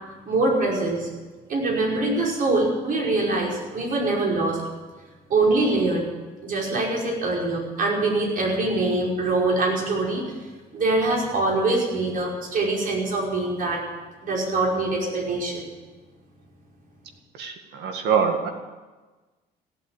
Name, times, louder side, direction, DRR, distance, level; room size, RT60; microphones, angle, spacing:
voice 1, 0.3-1.1 1.5-4.6 5.3-6.0 6.4-10.2 10.7-13.8 14.2-15.7, right 2 dB, 55° right, -2 dB, 5.5 m, -23 dB
voice 2, 17.4-18.5, right 6 dB, 80° right, 6 dB, 2.0 m, -24 dB
16.5 x 8.5 x 9.1 m, 1.3 s
cardioid pair, 110°, 17 cm